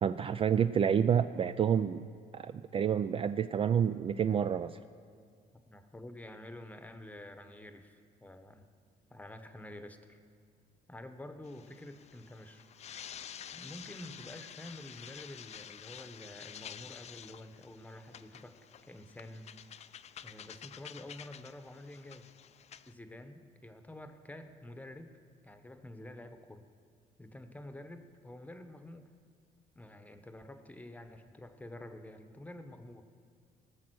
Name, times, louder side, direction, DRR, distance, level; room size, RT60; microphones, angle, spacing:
voice 1, 0.0-2.0 2.3-4.7, right 8 dB, 35° right, 11 dB, 0.3 m, -29 dB
voice 2, 5.7-8.7 9.1-10.2 10.9-12.6 13.5-18.6 18.9-19.5 20.2-22.3 22.9-25.1 25.4-26.7 27.2-29.1 29.7-33.0, left 1 dB, 10° left, 8 dB, 0.9 m, -49 dB
sound 1, 11.4-22.9, left 9 dB, 40° left, 0.4 m, -50 dB
18.0 x 7.3 x 6.2 m, 2.1 s
cardioid pair, 110°, 17 cm